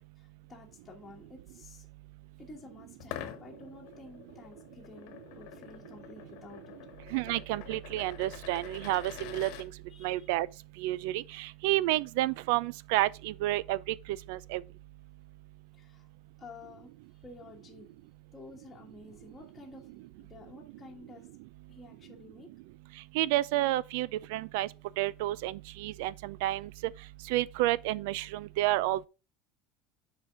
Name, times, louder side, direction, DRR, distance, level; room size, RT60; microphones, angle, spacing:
voice 1, 0.5-1.9 2.4-6.9 9.9-10.3 15.7-16.1 16.4-16.9 17.2-17.9 18.3-21.3 21.7-22.5, left 2 dB, 10° left, 1.5 m, -51 dB
sound 1, 3.0-9.7, left 11 dB, 60° left, 1.2 m, -46 dB
voice 2, 7.1-9.7 10.0-10.5 10.8-13.8 14.3-14.6 23.1-24.7 25.0-26.7 27.3-29.1, right 16 dB, 70° right, 0.4 m, -30 dB
7.2 x 5.1 x 3.7 m
cardioid pair, 170°, 0 cm